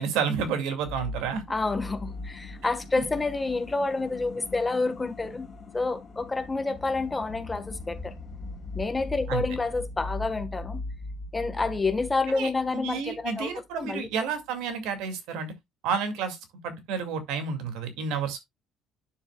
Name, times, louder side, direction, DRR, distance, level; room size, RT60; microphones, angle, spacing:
voice 1, 0.0-1.4 9.3-9.4 12.3-15.5 15.8-16.4 16.6-18.4, right 6 dB, 85° right, 2.1 m, -30 dB
sound 1, 0.8-13.3 13.5-13.6, left 3 dB, 35° left, 4.2 m, -40 dB
voice 2, 1.5-8.1 8.7-10.9 11.3-13.5 13.8-14.0, left 3 dB, 15° left, 1.3 m, -29 dB
9.8 x 7.2 x 2.3 m
cardioid pair, 150°, 0 cm